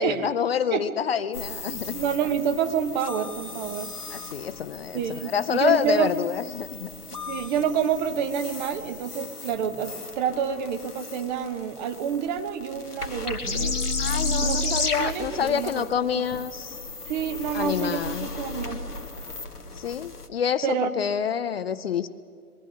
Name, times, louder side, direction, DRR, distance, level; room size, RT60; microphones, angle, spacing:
voice 1, 0.0-1.9 4.1-6.9 14.0-16.8 17.5-18.3 19.8-22.1, left 8 dB, 45° left, 13 dB, 0.6 m, -27 dB
sound 1, 1.3-20.3, left 3 dB, 85° left, 1.5 m, -34 dB
voice 2, 1.9-3.9 4.9-6.1 7.1-13.7 14.4-16.2 17.1-18.8 20.6-20.9, right 8 dB, 30° right, 8 dB, 1.2 m, -28 dB
21.5 x 14.0 x 8.6 m, 2.1 s
figure-of-eight pair, 120°, 45 cm